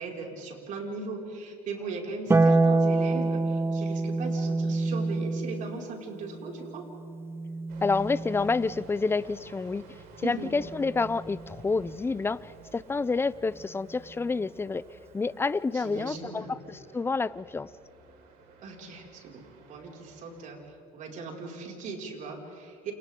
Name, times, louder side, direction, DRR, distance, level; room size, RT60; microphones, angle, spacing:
voice 1, 0.0-6.9 10.2-10.5 15.7-16.6 18.6-22.9, right 4 dB, 55° right, -1 dB, 5.8 m, -38 dB
Harp, 2.3-8.8 10.4-11.4, right 3 dB, 15° right, 0.8 m, -27 dB
sound 1, 7.7-20.5, right 4 dB, 75° right, 5.2 m, -52 dB
voice 2, 7.8-9.8 10.2-14.8 15.1-17.7, left 4 dB, 15° left, 17 dB, 0.6 m, -28 dB
30.0 x 29.5 x 3.8 m, 2.7 s
cardioid pair, 105°, 15 cm